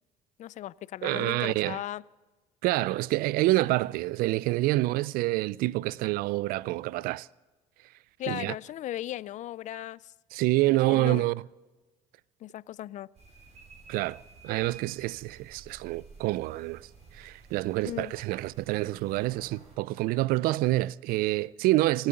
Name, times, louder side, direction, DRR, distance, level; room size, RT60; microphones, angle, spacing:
voice 1, 0.4-2.0 8.2-10.1 10.7-11.2 12.4-13.1 17.8-18.1, left 13 dB, 50° left, 0.4 m, -37 dB
voice 2, 1.0-1.8 2.6-7.3 8.3-8.5 10.3-11.4 13.9-16.9 17.1-22.1, right 18 dB, 65° right, 0.4 m, -27 dB
sound 1, 13.1-19.8, right 5 dB, 45° right, 5.4 m, -52 dB
24.0 x 8.9 x 6.7 m
supercardioid pair, 80°, 16 cm